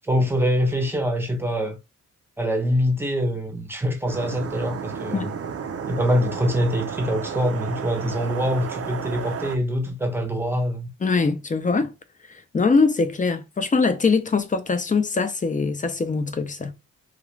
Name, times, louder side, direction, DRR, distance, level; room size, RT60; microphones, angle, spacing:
voice 1, 0.0-1.8 2.4-5.3 5.9-10.9, equal, 5° right, 0.8 m, -24 dB
sound 1, 4.1-9.6, right 6 dB, 45° right, 0.5 m, -32 dB
voice 2, 11.0-11.9 12.5-16.7, left 4 dB, 25° left, 0.6 m, -22 dB
2.4 x 2.4 x 3.1 m
cardioid pair, 80°, 32 cm